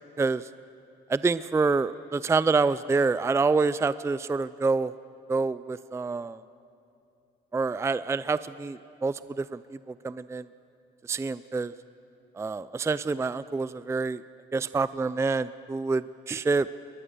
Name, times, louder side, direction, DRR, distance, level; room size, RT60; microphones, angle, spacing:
voice 1, 0.2-0.5 1.1-4.9 5.3-6.4 7.5-9.6 9.9-10.5 11.1-11.7 12.4-14.2 14.5-16.7, right 4 dB, 15° right, 16 dB, 0.4 m, -27 dB
21.5 x 20.0 x 6.9 m, 2.7 s
cardioid pair, 90°, 20 cm